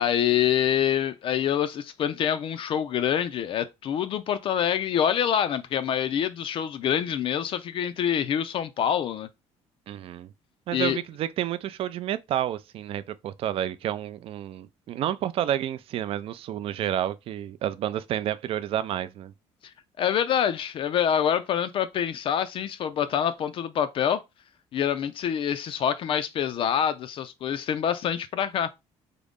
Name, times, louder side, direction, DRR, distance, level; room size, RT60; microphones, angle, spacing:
voice 1, 0.0-9.3 10.7-11.0 20.0-24.2 24.7-28.7, left 9 dB, 50° left, 0.4 m, -26 dB
voice 2, 9.9-10.3 10.7-19.3, right 11 dB, 55° right, 0.4 m, -30 dB
3.7 x 2.0 x 3.5 m
cardioid pair, 135°, 12 cm